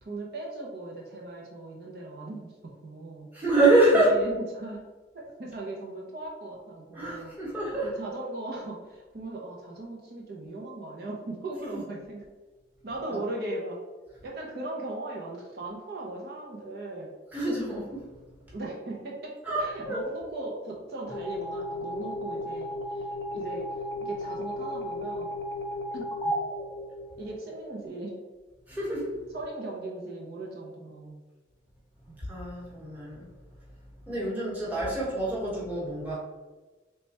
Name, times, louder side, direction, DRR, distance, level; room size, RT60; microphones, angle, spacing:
voice 1, 0.0-3.3 4.0-4.8 5.1-7.3 7.8-12.2 12.8-13.8 14.2-17.1 18.5-23.1 23.3-23.7 24.0-25.3 25.9-26.4 27.2-28.1 29.3-31.2 32.1-32.2 34.1-34.6, right 2 dB, 55° right, -2 dB, 0.6 m, -38 dB
voice 2, 3.3-4.1 6.9-7.9 13.1-13.2 17.3-18.0 19.4-20.0 28.7-29.1 32.2-33.3 34.1-36.2, right 2 dB, 10° right, -7 dB, 1.0 m, -26 dB
sound 1, 21.1-27.6, left 1 dB, 15° left, 0.5 m, -34 dB
3.3 x 2.2 x 4.0 m, 1.3 s
head